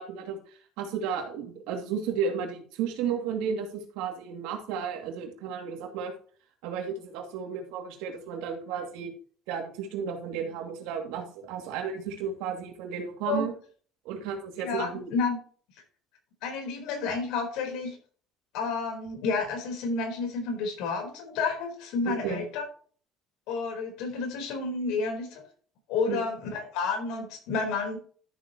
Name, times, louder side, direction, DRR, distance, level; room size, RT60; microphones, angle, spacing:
voice 1, 0.0-6.1 6.6-9.1 9.5-13.5 14.0-15.1 22.0-22.4 26.1-26.2, right 6 dB, 85° right, 3 dB, 2.5 m, -33 dB
voice 2, 14.6-15.4 16.4-18.0 18.5-22.6 23.5-25.4 25.9-28.0, left 4 dB, 80° left, 3 dB, 4.1 m, -30 dB
13.0 x 7.4 x 3.0 m, 0.43 s
cardioid pair, 115°, 0 cm